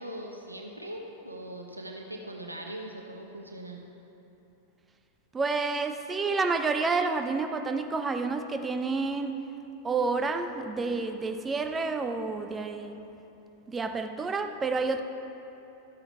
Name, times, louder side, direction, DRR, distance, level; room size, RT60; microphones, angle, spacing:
voice 1, 0.0-3.8, right 1 dB, 85° right, 2 dB, 0.8 m, -40 dB
voice 2, 5.3-9.4 9.8-13.0 13.7-15.0, right 4 dB, 15° right, 7 dB, 0.7 m, -29 dB
12.5 x 8.9 x 4.5 m, 3.0 s
figure-of-eight pair, 90°, 0 cm